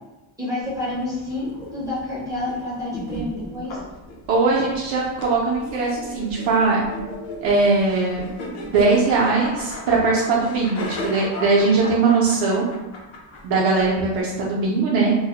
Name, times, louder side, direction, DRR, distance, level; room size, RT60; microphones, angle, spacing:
voice 1, 0.4-3.8, left 2 dB, 10° right, -8 dB, 0.5 m, -29 dB
sound 1, 0.6-14.2, left 2 dB, 70° left, 0.7 m, -36 dB
voice 2, 4.3-6.8 7.4-8.3 8.7-12.7 13.4-15.2, right 3 dB, 65° right, -4 dB, 0.6 m, -20 dB
2.2 x 2.0 x 2.8 m, 1.1 s
cardioid pair, 175°, 48 cm